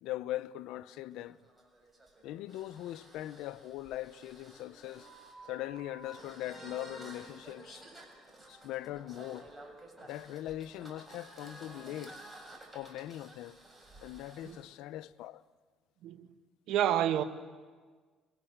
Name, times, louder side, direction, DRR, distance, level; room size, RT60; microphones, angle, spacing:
voice 1, 0.0-1.4 2.2-5.1 5.5-7.8 8.5-9.5 10.0-12.2 12.7-13.6 14.0-15.4, left 14 dB, 75° left, 0.9 m, -41 dB
sound 1, 0.9-14.6, right 1 dB, 15° right, 7.1 m, -52 dB
voice 2, 16.7-17.2, right 11 dB, 75° right, 1.6 m, -29 dB
29.0 x 23.5 x 8.2 m
cardioid pair, 100°, 0 cm